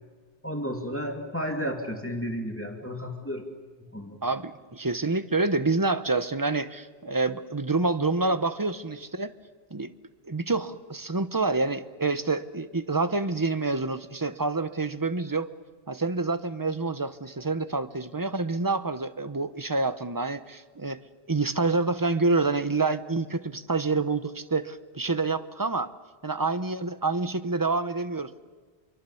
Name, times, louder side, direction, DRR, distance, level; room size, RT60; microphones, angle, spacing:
voice 1, 0.4-3.5 3.9-4.2, equal, 10° left, 3 dB, 2.4 m, -32 dB
voice 2, 4.2-9.3 9.7-9.9 10.2-15.5 15.9-21.0 21.3-25.9 26.2-28.3, right 3 dB, 20° right, 12 dB, 0.8 m, -27 dB
27.0 x 23.5 x 7.1 m, 1.4 s
omnidirectional pair, 1.0 m